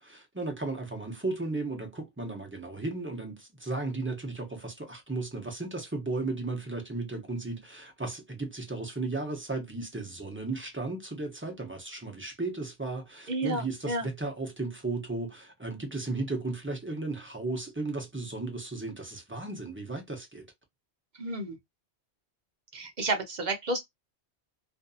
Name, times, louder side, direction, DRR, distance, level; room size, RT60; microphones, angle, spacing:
voice 1, 0.0-20.5, right 3 dB, 15° right, 0.5 m, -35 dB
voice 2, 13.3-14.1 21.2-21.6 22.7-23.8, right 2 dB, 50° right, 0.7 m, -31 dB
2.6 x 2.5 x 2.4 m
omnidirectional pair, 1.1 m